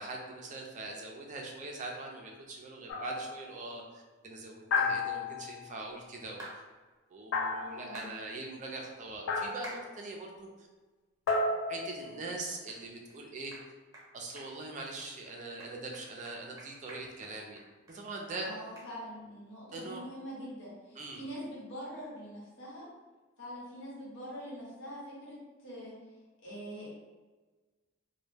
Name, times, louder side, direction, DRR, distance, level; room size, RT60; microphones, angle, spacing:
voice 1, 0.0-6.4 7.1-10.5 11.7-13.5 14.1-17.6 17.9-18.5 19.7-20.1 21.0-21.2, right 2 dB, 40° right, 0 dB, 0.4 m, -42 dB
sound 1, 2.9-3.4 4.7-5.6 7.3-8.1 9.3-9.8 11.3-12.5, left 3 dB, 90° left, 0.3 m, -32 dB
sound 2, 6.4-6.6 7.9-8.1 9.6-9.8 10.4-10.5 11.3-11.4 11.9-12.0 12.7-12.8 13.1-13.2 13.5-13.7 13.9-14.1 14.4-14.8 15.2-15.3 15.6-18.0 18.2-18.3 18.8-18.9, right 1 dB, 20° right, 0.8 m, -48 dB
voice 2, 7.6-8.1 18.4-22.9 23.4-25.9 26.4-26.9, equal, 65° left, -6 dB, 1.1 m, -44 dB
2.2 x 2.1 x 3.2 m, 1.3 s
head